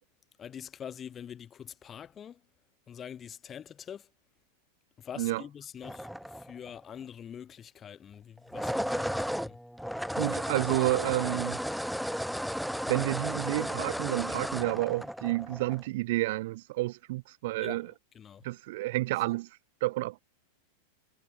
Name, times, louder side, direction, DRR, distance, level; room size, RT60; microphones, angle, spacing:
voice 1, 0.4-2.4 2.9-4.1 5.0-9.6 17.6-18.4, left 8 dB, 25° left, 7.0 m, -45 dB
sound 1, 5.8-6.8 8.4-15.8, equal, ahead, 5.4 m, -34 dB
voice 2, 10.2-11.6 12.9-17.9 18.4-19.5 19.8-20.2, right 19 dB, 65° right, 1.5 m, -30 dB
hypercardioid pair, 110°, 0 cm